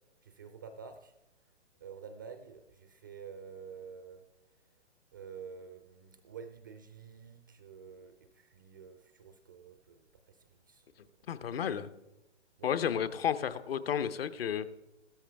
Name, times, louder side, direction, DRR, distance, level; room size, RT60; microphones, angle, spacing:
voice 1, 0.2-1.1 1.8-4.3 4.5-4.6 5.1-10.9 12.6-12.7, right 6 dB, 20° right, 9 dB, 0.4 m, -49 dB
voice 2, 11.3-11.9 12.6-14.7, left 8 dB, 55° left, 13 dB, 0.9 m, -32 dB
15.0 x 13.0 x 3.5 m, 0.94 s
figure-of-eight pair, 130°, 36 cm